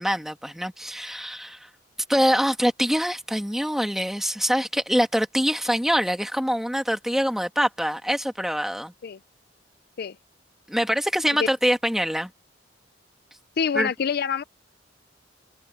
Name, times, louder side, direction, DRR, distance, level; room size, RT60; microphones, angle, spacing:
voice 1, 0.0-1.6 2.1-8.9 10.7-12.3 13.8-13.9, equal, ahead, 2.0 m, -24 dB
voice 2, 13.6-14.4, left 6 dB, 55° left, 0.4 m, -26 dB
head